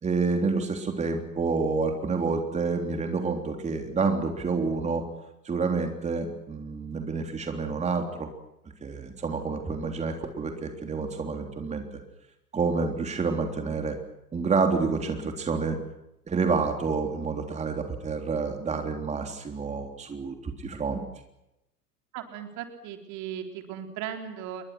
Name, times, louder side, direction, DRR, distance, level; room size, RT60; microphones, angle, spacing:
voice 1, 0.0-5.0 5.5-8.3 8.8-11.8 12.5-14.0 14.3-15.8 16.3-21.0, right 4 dB, 15° right, 4 dB, 3.5 m, -28 dB
voice 2, 22.1-24.6, right 9 dB, 35° right, 4 dB, 4.0 m, -37 dB
30.0 x 23.0 x 6.2 m, 0.86 s
figure-of-eight pair, 95°, 47 cm